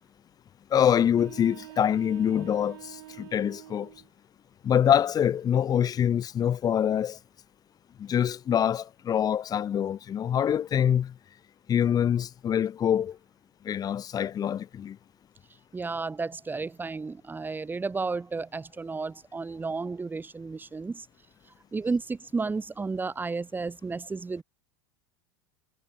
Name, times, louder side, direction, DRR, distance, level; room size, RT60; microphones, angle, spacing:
voice 1, 0.7-3.9 4.6-7.2 8.0-11.1 11.7-13.2 13.6-15.0, left 9 dB, 30° left, 1.5 m, -25 dB
sound 1, 1.1-4.1, right 17 dB, 70° right, 7.0 m, -46 dB
voice 2, 15.7-21.1 21.7-24.4, right 4 dB, 15° right, 4.3 m, -32 dB
hypercardioid pair, 95°, 12 cm